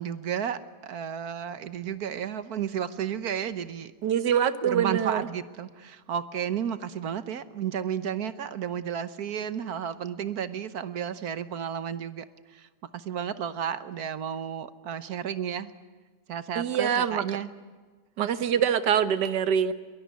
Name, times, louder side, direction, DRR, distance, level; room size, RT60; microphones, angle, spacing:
voice 1, 0.0-3.9 4.6-15.7 16.3-17.5 18.2-18.3, right 8 dB, 65° right, 14 dB, 1.4 m, -32 dB
voice 2, 4.0-5.3 16.6-17.2 18.2-19.7, right 8 dB, 85° right, 13 dB, 1.8 m, -24 dB
22.5 x 20.0 x 9.4 m, 1.4 s
omnidirectional pair, 1.8 m